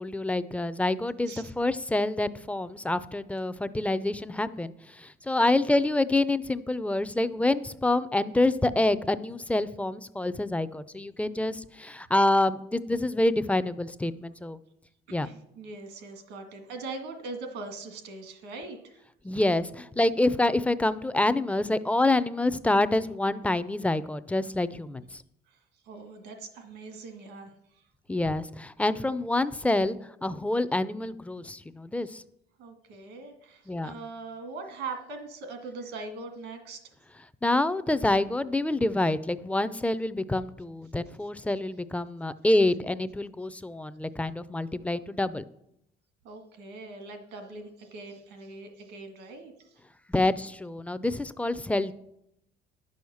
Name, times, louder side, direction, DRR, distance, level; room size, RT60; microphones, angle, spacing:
voice 1, 0.0-14.6 15.1-15.3 19.2-25.2 28.1-32.2 33.7-33.9 37.4-45.4 50.1-51.9, left 2 dB, 10° left, 15 dB, 0.5 m, -27 dB
voice 2, 15.1-19.0 25.9-27.5 32.6-36.8 46.2-49.7, right 3 dB, 90° right, 6 dB, 2.0 m, -41 dB
10.5 x 6.4 x 7.0 m, 0.79 s
cardioid pair, 110°, 17 cm